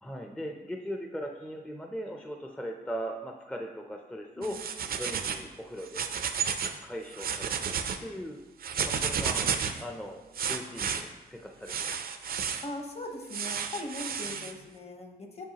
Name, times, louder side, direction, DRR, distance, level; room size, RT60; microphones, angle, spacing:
voice 1, 0.0-6.1 6.8-8.4 8.8-9.5 9.8-11.9 14.3-14.6, equal, 5° left, 2 dB, 0.4 m, -39 dB
sound 1, 4.4-5.5 5.8-6.8 7.1-8.0 8.6-9.8 10.3-11.0 11.7-12.7 13.3-14.5, right 6 dB, 65° right, 0.4 m, -32 dB
voice 2, 12.6-15.4, left 1 dB, 40° left, 3 dB, 0.8 m, -40 dB
7.4 x 5.4 x 2.8 m, 1.1 s
wide cardioid pair, 145°, 17 cm